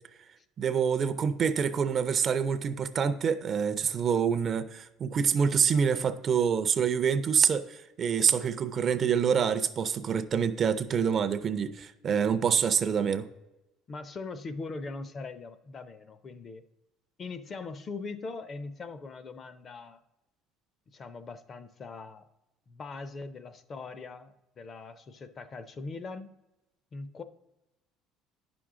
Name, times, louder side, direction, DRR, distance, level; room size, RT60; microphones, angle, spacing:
voice 1, 0.6-13.3, right 7 dB, 30° right, 0.4 m, -26 dB
voice 2, 13.9-16.6 17.2-20.0 20.9-22.2 22.7-26.3 26.9-27.2, left 3 dB, 30° left, 0.5 m, -41 dB
9.8 x 6.0 x 3.7 m
cardioid pair, 155°, 0 cm